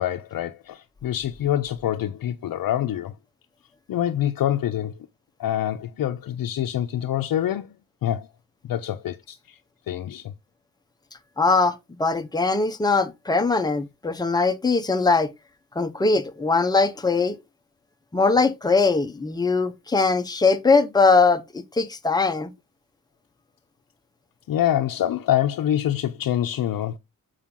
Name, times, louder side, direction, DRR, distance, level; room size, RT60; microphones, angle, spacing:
voice 1, 0.0-3.1 3.9-4.9 5.4-7.7 8.0-8.3 8.6-9.6 9.9-10.3 24.5-27.0, left 11 dB, 80° left, 0.6 m, -25 dB
voice 2, 11.4-15.3 15.8-17.4 18.1-22.5, left 4 dB, 10° left, 0.6 m, -21 dB
7.3 x 4.9 x 3.6 m
wide cardioid pair, 170°, 34 cm